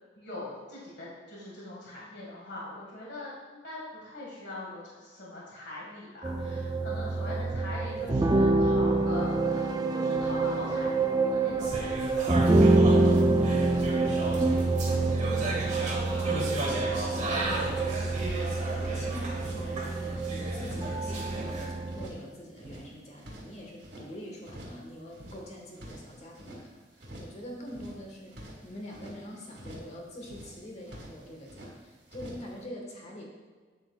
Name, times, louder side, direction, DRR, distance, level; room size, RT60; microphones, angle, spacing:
voice 1, 0.2-12.8, left 1 dB, 65° left, -5 dB, 1.9 m, -42 dB
sound 1, 6.2-22.1, right 2 dB, 20° right, 0.4 m, -26 dB
sound 2, 11.6-21.7, right 1 dB, 40° right, 1.3 m, -35 dB
sound 3, 13.0-13.9 14.2-14.6 14.9-16.4 16.8-17.2 17.4-19.0 19.3-19.7 20.0-21.5 21.9-22.3 22.5-24.1 24.4-24.8 25.1-26.6 27.0-27.4 27.6-29.2 29.5-29.9 30.2-30.6 30.8-31.7 32.1-32.5, equal, 70° right, 1.8 m, -46 dB
voice 2, 13.2-15.7 16.0-28.4 28.6-33.2, equal, 40° left, 0 dB, 1.4 m, -45 dB
8.0 x 7.5 x 2.4 m, 1.5 s
head